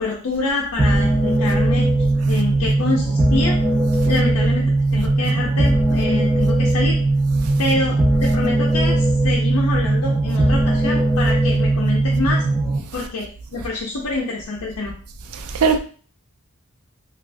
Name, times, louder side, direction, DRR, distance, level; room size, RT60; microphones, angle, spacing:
voice 1, 0.0-1.9 2.3-3.5 4.0-4.6 4.9-7.0 7.6-12.4 12.9-14.9, left 3 dB, 75° left, 0.5 m, -26 dB
sound 1, 0.8-12.8, right 2 dB, 15° right, 0.6 m, -18 dB
voice 2, 15.3-15.8, right 5 dB, 75° right, 0.4 m, -23 dB
3.3 x 2.4 x 2.5 m
head